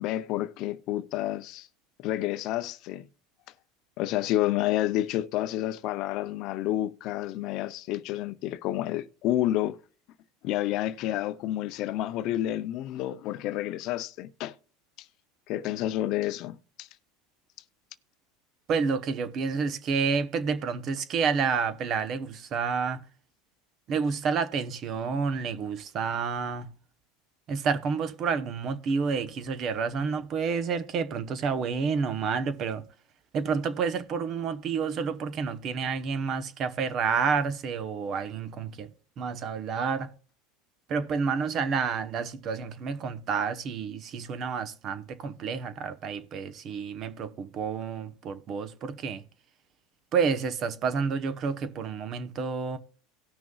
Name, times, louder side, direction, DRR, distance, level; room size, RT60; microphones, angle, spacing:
voice 1, 0.0-1.7 2.0-3.1 4.0-9.8 10.4-14.5 15.5-16.9, left 14 dB, 55° left, 0.5 m, -29 dB
voice 2, 18.7-23.0 23.9-26.7 27.5-32.8 33.3-38.9 39.2-40.1 40.9-49.2 50.1-52.8, right 5 dB, 40° right, 0.9 m, -29 dB
18.0 x 6.1 x 2.3 m
supercardioid pair, 120°, 0 cm